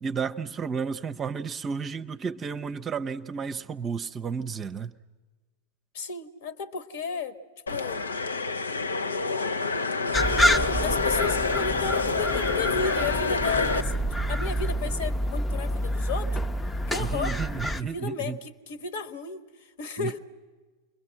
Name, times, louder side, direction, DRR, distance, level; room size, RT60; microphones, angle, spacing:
voice 1, 0.0-4.9 17.0-18.4 20.0-20.2, right 6 dB, 25° right, 0.7 m, -32 dB
voice 2, 5.9-7.4 7.7-8.1 10.3-16.4 16.9-17.4 17.8-20.2, left 5 dB, 55° left, 1.4 m, -34 dB
sound 1, 7.7-13.8, left 4 dB, 75° left, 0.8 m, -27 dB
sound 2, 10.1-17.8, equal, 10° left, 0.7 m, -28 dB
29.5 x 22.5 x 7.6 m
figure-of-eight pair, 90°, 0 cm